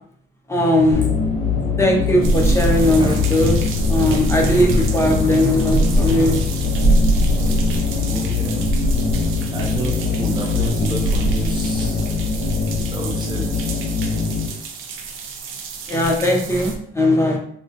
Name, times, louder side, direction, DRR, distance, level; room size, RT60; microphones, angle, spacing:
voice 1, 0.5-1.1 1.8-6.3 15.9-17.4, left 1 dB, 15° left, -1 dB, 0.7 m, -18 dB
sound 1, 0.7-13.2, left 3 dB, 65° right, 1.1 m, -32 dB
sound 2, 0.9-14.5, left 5 dB, 60° left, 0.6 m, -23 dB
sound 3, 2.2-16.8, right 2 dB, 90° right, 0.5 m, -24 dB
voice 2, 8.1-8.6 9.5-12.0 12.9-13.5, right 2 dB, 20° right, -2 dB, 0.5 m, -30 dB
3.6 x 2.4 x 2.5 m, 0.63 s
cardioid pair, 90°, 20 cm